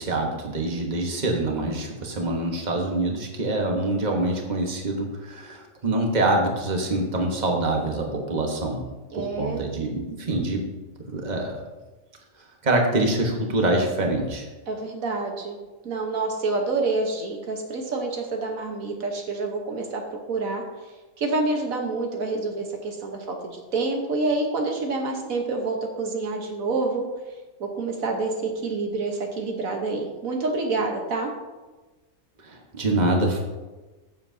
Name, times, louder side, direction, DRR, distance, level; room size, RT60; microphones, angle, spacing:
voice 1, 0.0-8.8 9.1-10.6 11.1-11.6 12.6-14.5 32.4-33.4, right 2 dB, 35° right, 1 dB, 1.4 m, -25 dB
voice 2, 9.1-9.6 14.7-15.6 15.8-27.0 27.6-31.3, right 3 dB, 80° right, 2 dB, 1.6 m, -28 dB
15.0 x 7.4 x 2.8 m, 1.2 s
omnidirectional pair, 1.4 m